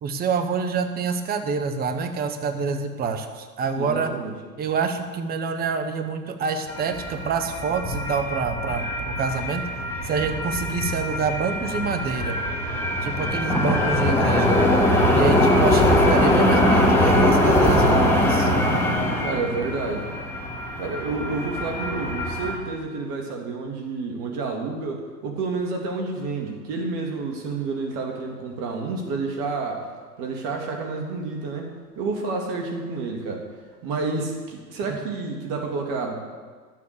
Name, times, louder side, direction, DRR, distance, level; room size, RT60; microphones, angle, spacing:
voice 1, 0.0-4.1 4.6-9.6 10.0-12.4 13.0-14.6 15.1-18.5, right 5 dB, 20° right, 7 dB, 1.0 m, -27 dB
voice 2, 3.7-4.3 19.2-20.1 20.8-29.8 30.2-33.5 33.8-36.1, right 3 dB, 40° right, 2 dB, 2.2 m, -29 dB
sound 1, 6.7-22.6, left 1 dB, 5° left, 2.0 m, -22 dB
12.5 x 7.5 x 6.6 m, 1.5 s
hypercardioid pair, 105°, 50 cm